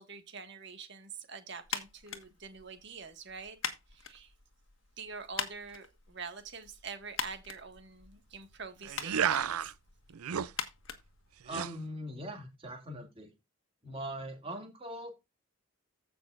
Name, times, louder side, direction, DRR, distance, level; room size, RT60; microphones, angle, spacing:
voice 1, 0.0-3.6 3.9-4.3 5.0-9.7, right 5 dB, 55° right, 1.8 m, -45 dB
sound 1, 1.6-11.8, left 7 dB, 65° left, 1.4 m, -43 dB
sound 2, 8.8-9.7 10.1-10.5 11.5-11.7, right 8 dB, 85° right, 0.5 m, -31 dB
voice 2, 11.4-13.3 13.8-15.1, right 1 dB, 25° right, 2.4 m, -41 dB
15.5 x 6.0 x 2.5 m
head